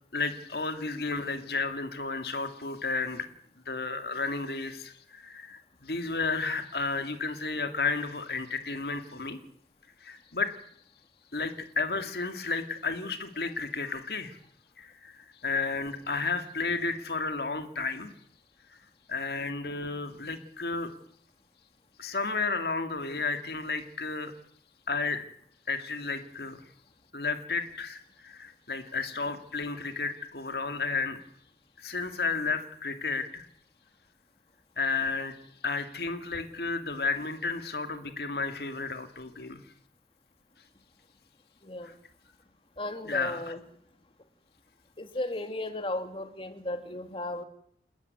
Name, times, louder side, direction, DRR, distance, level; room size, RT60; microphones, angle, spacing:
voice 1, 0.1-3.3 3.7-9.4 10.0-10.6 11.3-14.4 14.8-18.1 18.7-18.8 19.1-20.9 22.0-24.3 24.9-25.2 25.7-26.6 27.1-31.2 31.8-33.5 34.8-35.3 35.6-39.6 41.8-41.9 43.1-43.6, left 4 dB, 60° left, 8 dB, 2.2 m, -32 dB
voice 2, 41.6-41.9 42.8-43.6 45.0-47.4, left 1 dB, 30° left, 8 dB, 2.4 m, -35 dB
29.5 x 13.5 x 9.5 m, 0.68 s
head